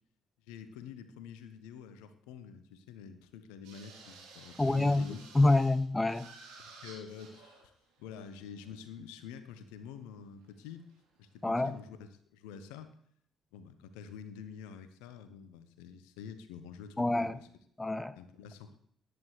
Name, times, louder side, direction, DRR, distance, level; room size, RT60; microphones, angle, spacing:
voice 1, 0.4-5.2 6.6-7.7 8.0-10.9 11.2-12.9 13.5-17.5 18.2-18.8, left 7 dB, 70° left, 11 dB, 1.0 m, -47 dB
sound 1, 3.6-5.8 6.1-7.7 8.0-8.8 10.7-11.2, right 4 dB, 70° right, 3.3 m, -53 dB
voice 2, 4.6-5.1 5.3-6.3 11.4-11.8 17.0-17.4 17.8-18.2, left 2 dB, 15° left, 16 dB, 0.7 m, -27 dB
18.0 x 10.0 x 3.3 m, 0.66 s
figure-of-eight pair, 45°, 0 cm